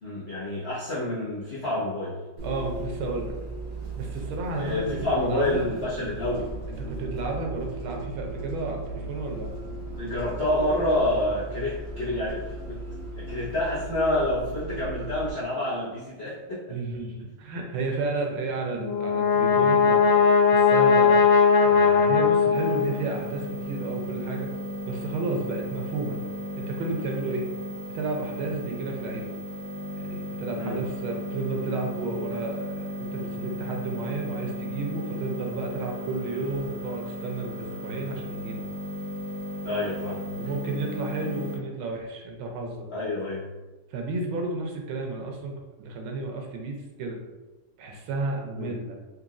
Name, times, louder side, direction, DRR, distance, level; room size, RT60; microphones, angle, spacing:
voice 1, 0.0-2.1 4.5-6.5 10.0-12.8 13.1-16.7 30.5-30.8 39.6-40.3 42.9-43.5 48.6-48.7, left 1 dB, 45° left, -11 dB, 0.9 m, -28 dB
Bus, 2.4-15.3, right 2 dB, 50° right, 1.1 m, -36 dB
voice 2, 2.4-3.3 4.0-5.6 6.8-9.5 16.7-21.2 21.6-24.5 24.9-26.2 26.6-27.5 27.9-29.3 30.0-38.6 40.3-42.9 43.9-47.2 47.8-49.0, right 3 dB, 80° right, 1 dB, 1.5 m, -32 dB
Brass instrument, 18.8-23.2, left 5 dB, 75° left, 1.3 m, -19 dB
sound 1, 22.5-41.6, equal, 20° right, 0.5 m, -35 dB
4.0 x 3.1 x 2.4 m, 1.2 s
omnidirectional pair, 2.3 m